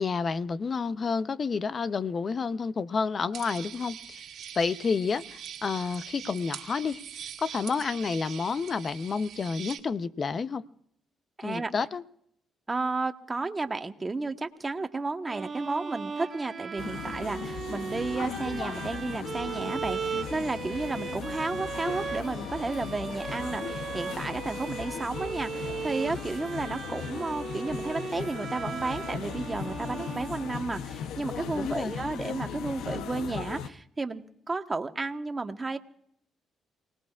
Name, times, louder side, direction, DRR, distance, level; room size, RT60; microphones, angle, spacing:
voice 1, 0.0-4.2 4.5-10.6 11.4-12.0 31.5-31.9, left 5 dB, 40° left, 0.7 m, -30 dB
sound 1, 3.3-9.8, right 9 dB, 75° right, 1.7 m, -43 dB
voice 2, 11.4-11.7 12.7-35.8, right 3 dB, 25° right, 1.2 m, -32 dB
sound 2, 15.3-30.9, right 5 dB, 40° right, 1.3 m, -38 dB
sound 3, 16.8-33.7, left 8 dB, 85° left, 0.7 m, -38 dB
29.0 x 19.0 x 2.4 m
cardioid pair, 90°, 0 cm